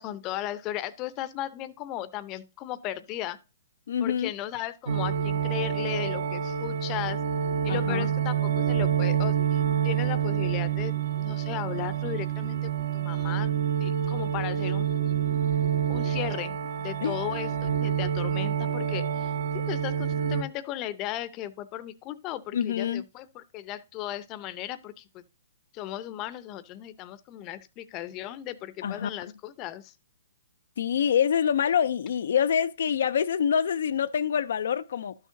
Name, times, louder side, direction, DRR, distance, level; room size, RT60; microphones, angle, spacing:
voice 1, 0.0-3.4 4.0-7.2 7.6-13.5 13.8-15.2 15.9-25.2 25.7-29.9, left 13 dB, 25° left, 0.6 m, -36 dB
voice 2, 3.9-4.3 7.7-8.1 17.0-17.2 22.5-23.0 28.8-29.1 30.8-35.1, left 8 dB, 65° left, 0.4 m, -26 dB
sound 1, 4.9-20.4, right 9 dB, 60° right, 1.1 m, -27 dB
12.0 x 6.4 x 2.6 m
hypercardioid pair, 145°, 0 cm